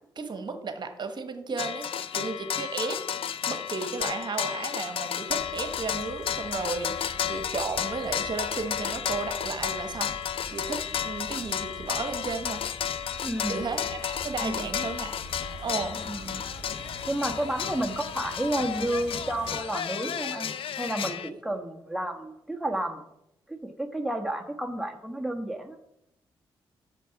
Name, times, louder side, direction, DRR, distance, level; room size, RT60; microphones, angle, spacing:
voice 1, 0.2-3.0 3.5-10.1 10.5-12.6 13.5-15.2 15.6-16.0, right 4 dB, 50° right, 7 dB, 1.3 m, -34 dB
sound 1, 1.6-21.3, left 9 dB, 70° left, 0.6 m, -32 dB
sound 2, 5.3-19.6, equal, 25° left, 4.3 m, -45 dB
voice 2, 13.2-13.6 14.4-14.7 16.0-16.4 17.1-20.5 20.8-23.0 23.5-25.8, right 1 dB, ahead, 4 dB, 1.3 m, -31 dB
8.3 x 7.0 x 5.9 m, 0.82 s
cardioid pair, 60°, 10 cm